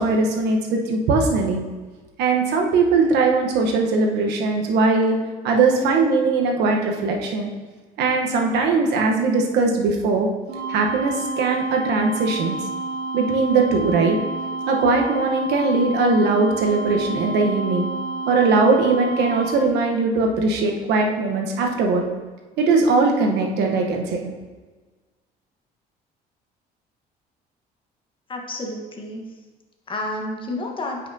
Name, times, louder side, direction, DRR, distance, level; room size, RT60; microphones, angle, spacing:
voice 1, 0.0-1.6 2.2-5.2 5.4-7.5 8.0-10.3 10.7-12.5 13.1-14.2 14.7-17.9 18.3-22.0 22.6-24.3, right 3 dB, 80° right, 2 dB, 1.1 m, -20 dB
sound 1, 10.5-19.5, right 2 dB, 60° right, 1.9 m, -29 dB
voice 2, 28.3-29.2 29.9-31.0, left 2 dB, 30° left, 1 dB, 1.3 m, -30 dB
9.1 x 5.7 x 2.8 m, 1.3 s
cardioid pair, 110°, 17 cm